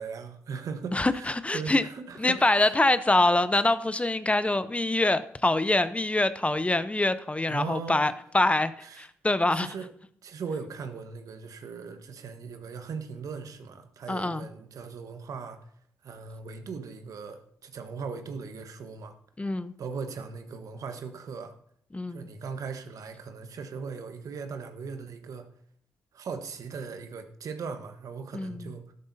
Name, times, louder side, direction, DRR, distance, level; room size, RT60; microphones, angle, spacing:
voice 1, 0.0-2.8 7.5-8.0 8.8-9.1 9.5-9.9 10.2-15.6 16.0-19.1 19.8-21.5 22.1-25.5 26.1-28.9, right 5 dB, 65° right, 7 dB, 1.2 m, -39 dB
voice 2, 0.9-1.8 2.2-9.7 14.1-14.5 19.4-19.7 21.9-22.3 28.3-28.7, left 2 dB, 20° left, 13 dB, 0.8 m, -25 dB
12.5 x 11.0 x 2.8 m, 0.66 s
hypercardioid pair, 40°, 6 cm